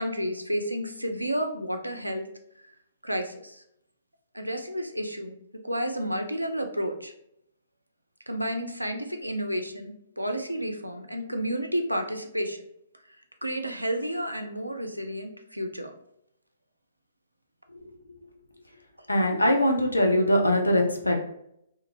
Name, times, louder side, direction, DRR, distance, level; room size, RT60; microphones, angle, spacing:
voice 1, 0.0-2.3 2.6-2.7 3.0-3.6 4.3-7.1 8.3-12.6 13.4-15.9, equal, 85° right, 5 dB, 0.4 m, -31 dB
voice 2, 19.1-21.2, left 1 dB, 80° left, 2 dB, 0.6 m, -22 dB
2.5 x 2.3 x 2.9 m, 0.75 s
figure-of-eight pair, 120°, 0 cm